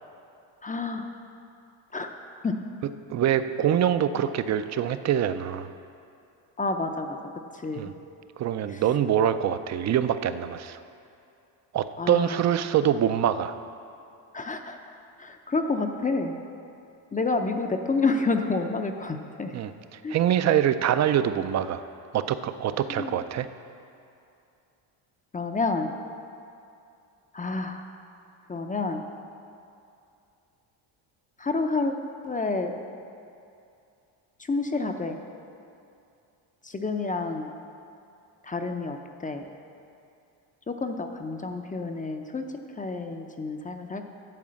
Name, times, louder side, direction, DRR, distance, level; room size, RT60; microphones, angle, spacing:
voice 1, 0.6-1.1 1.9-2.2 2.4-2.6 4.2-4.3 6.6-7.2 7.5-7.9 8.7-8.8 12.0-12.4 14.3-16.4 17.1-19.5 20.0-20.2 22.9-23.2 25.3-25.9 27.3-27.9 28.5-29.0 31.4-31.9 32.2-32.8 34.4-35.2 36.6-37.5 38.4-39.4 40.7-44.0, left 3 dB, 15° left, 5 dB, 0.5 m, -29 dB
voice 2, 3.1-5.7 7.7-7.9 8.4-10.8 11.7-13.6 19.5-21.8 22.1-23.5, right 10 dB, 35° right, 11 dB, 0.4 m, -25 dB
11.0 x 4.9 x 7.5 m, 2.6 s
cardioid pair, 110°, 48 cm